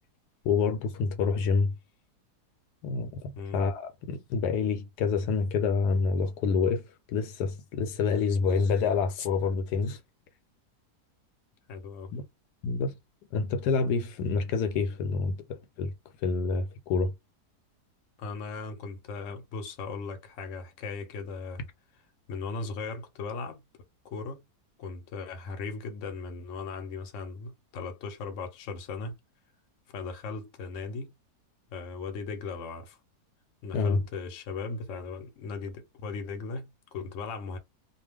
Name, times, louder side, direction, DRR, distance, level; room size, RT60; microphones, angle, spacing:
voice 1, 0.4-1.7 2.8-10.0 12.1-12.2 12.6-13.0 13.3-15.9 16.2-17.1 33.7-34.0, left 5 dB, 80° left, 1.1 m, -27 dB
voice 2, 11.7-12.1 18.2-21.7 22.3-23.6 24.0-24.4 24.8-29.2 29.9-31.1 31.7-33.0 33.6-37.6, left 4 dB, 60° left, 0.9 m, -38 dB
2.5 x 2.2 x 3.3 m
omnidirectional pair, 1.7 m